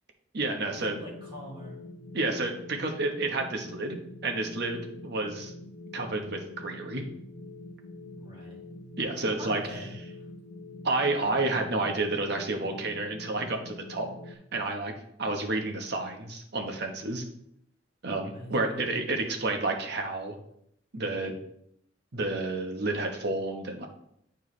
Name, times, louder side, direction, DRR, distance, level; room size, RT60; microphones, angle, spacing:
voice 1, 0.3-1.0 2.1-5.5 5.9-7.0 9.0-9.9 10.8-14.9 15.2-17.2 18.0-20.4 20.9-21.4 22.1-23.9, right 2 dB, 60° right, 3 dB, 1.0 m, -30 dB
sound 1, 0.7-14.3, left 2 dB, 70° left, 0.8 m, -45 dB
voice 2, 0.9-1.8 8.2-8.6 9.4-9.9 18.3-18.9, equal, 25° right, -5 dB, 3.0 m, -43 dB
9.0 x 4.5 x 3.2 m, 0.72 s
head